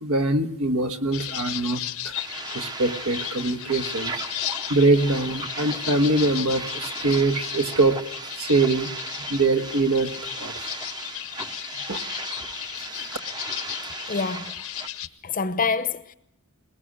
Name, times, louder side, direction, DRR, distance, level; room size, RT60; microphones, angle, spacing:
voice 1, 0.0-2.2 2.5-4.2 4.7-8.0 8.4-10.7 11.9-12.0 13.0-13.1, right 2 dB, 80° right, 1.6 m, -23 dB
sound 1, 1.1-15.1, left 12 dB, 70° left, 1.0 m, -35 dB
sound 2, 2.2-14.9, right 3 dB, 20° right, 0.8 m, -37 dB
voice 2, 14.1-14.5 15.2-16.1, left 4 dB, 35° left, 0.8 m, -26 dB
22.5 x 19.5 x 6.4 m
head